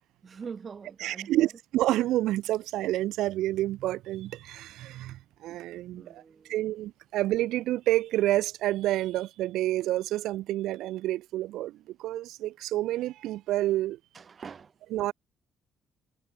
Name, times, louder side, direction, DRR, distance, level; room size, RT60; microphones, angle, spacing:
voice 1, 0.2-1.5 5.9-6.6 14.1-14.8, right 6 dB, 35° right, 4.9 m, -43 dB
voice 2, 1.0-6.2 6.5-14.0 14.9-15.1, right 15 dB, 85° right, 1.2 m, -29 dB
cardioid pair, 120°, 0 cm